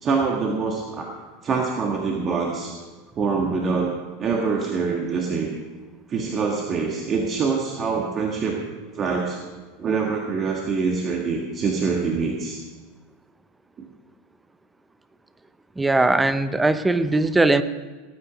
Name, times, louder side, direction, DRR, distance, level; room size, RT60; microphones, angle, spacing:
voice 1, 0.0-1.1 1.4-2.8 3.2-3.9 4.2-5.6 6.1-8.6 8.9-9.4 9.8-12.6, right 5 dB, 35° right, 0 dB, 1.7 m, -25 dB
voice 2, 15.8-17.6, right 2 dB, 10° right, 13 dB, 0.7 m, -19 dB
18.5 x 9.0 x 5.1 m, 1.3 s
supercardioid pair, 110°, 0 cm